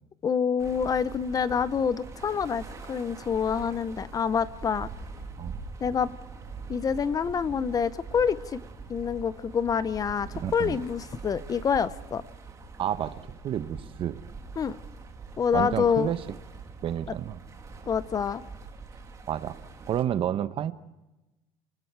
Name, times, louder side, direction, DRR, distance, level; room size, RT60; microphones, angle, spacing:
voice 1, 0.2-4.9 5.8-6.1 6.7-8.6 8.9-12.2 14.6-14.8 15.4-16.1 17.9-18.4, left 6 dB, 30° left, 16 dB, 0.7 m, -27 dB
sound 1, 0.6-20.0, right 4 dB, 25° right, 2.5 m, -43 dB
voice 2, 10.3-10.8 12.8-14.2 15.5-16.2 16.8-17.4 19.3-19.6 19.8-20.7, right 10 dB, 45° right, 13 dB, 0.9 m, -30 dB
30.0 x 20.0 x 4.6 m, 1.0 s
cardioid pair, 140°, 12 cm